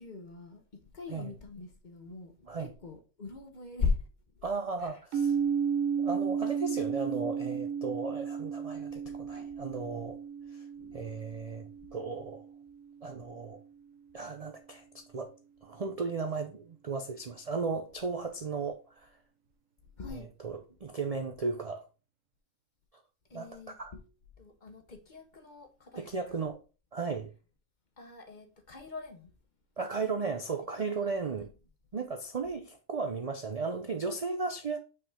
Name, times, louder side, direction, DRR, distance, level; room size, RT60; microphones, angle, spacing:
voice 1, 0.0-4.1 4.8-4.9 9.0-9.5 10.8-11.0 20.0-20.3 23.3-24.0 24.4-26.1 28.0-29.3 31.0-31.5, left 5 dB, 40° left, 1.0 m, -39 dB
voice 2, 4.4-5.4 6.0-10.2 10.5-10.6 10.9-12.4 13.0-13.6 14.1-15.3 15.6-19.1 20.1-21.8 23.3-23.9 25.9-26.6 26.9-27.3 29.8-31.5 31.9-34.8, right 4 dB, 55° right, 0.4 m, -35 dB
sound 1, 5.1-12.9, right 7 dB, 70° right, 1.2 m, -34 dB
5.8 x 4.8 x 3.7 m
omnidirectional pair, 1.5 m